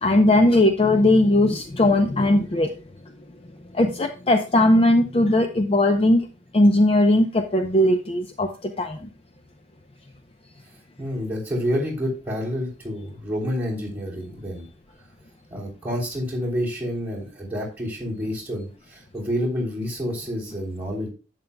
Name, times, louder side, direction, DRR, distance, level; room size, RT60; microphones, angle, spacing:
voice 1, 0.0-2.7 3.7-6.2 6.5-9.0, left 1 dB, 30° left, 7 dB, 0.5 m, -18 dB
voice 2, 11.0-14.7 15.5-21.1, equal, 10° right, -4 dB, 3.1 m, -28 dB
11.0 x 8.2 x 2.2 m, 0.33 s
head